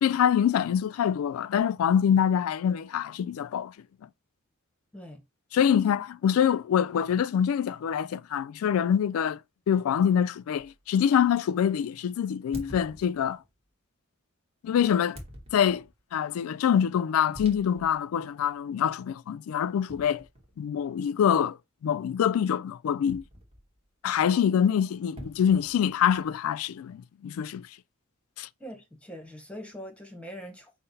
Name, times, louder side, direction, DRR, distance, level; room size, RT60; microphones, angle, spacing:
voice 1, 0.0-3.7 5.5-9.4 9.7-13.4 14.6-15.2 15.5-15.8 16.1-20.2 20.6-21.6 21.8-23.2 24.0-27.7 28.4-28.5, left 8 dB, 75° left, 0.3 m, -25 dB
sound 1, 10.6-10.8 12.5-13.5 15.1-16.0 17.3-18.0 18.4-18.5 19.9-20.8 23.1-23.9 25.2-26.3, equal, 30° right, 1.2 m, -46 dB
voice 2, 28.6-30.7, equal, 5° left, 0.9 m, -42 dB
5.6 x 2.1 x 4.0 m
head